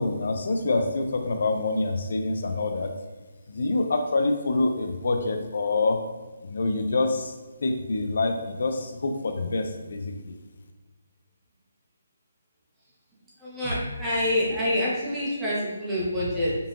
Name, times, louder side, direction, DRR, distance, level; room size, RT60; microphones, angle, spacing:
voice 1, 0.0-2.9 3.5-6.0 6.4-7.4 7.6-10.3, left 3 dB, 65° left, 5 dB, 0.4 m, -26 dB
voice 2, 13.4-16.6, left 1 dB, 10° right, -8 dB, 1.0 m, -26 dB
5.3 x 2.7 x 2.5 m, 1.3 s
hypercardioid pair, 165°, 0 cm